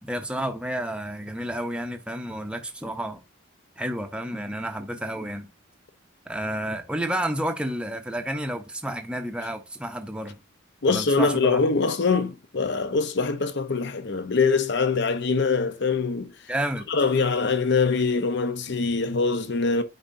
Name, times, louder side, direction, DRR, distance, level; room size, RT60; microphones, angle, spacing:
voice 1, 0.0-3.2 3.8-5.5 6.3-10.4 10.9-11.6 16.5-16.9, right 1 dB, 5° right, 0.6 m, -30 dB
voice 2, 10.8-16.3 16.9-19.8, left 4 dB, 55° left, 0.7 m, -23 dB
8.9 x 4.0 x 2.6 m
head